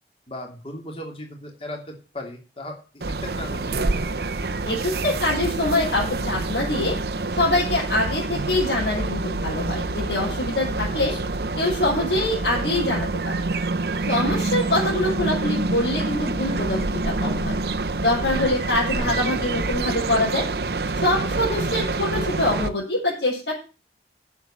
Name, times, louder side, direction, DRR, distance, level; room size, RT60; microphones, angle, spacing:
voice 1, 0.3-2.8 3.1-4.2 10.9-11.3 15.0-15.2 18.9-19.3, left 1 dB, 30° left, 2 dB, 2.7 m, -37 dB
sound 1, 3.0-22.7, right 3 dB, 65° right, 0.8 m, -27 dB
voice 2, 4.6-7.0 7.3-11.1 11.6-13.4 14.1-17.6 18.0-20.5 20.9-23.5, left 1 dB, 90° left, -6 dB, 5.2 m, -24 dB
8.2 x 7.3 x 8.7 m, 0.35 s
head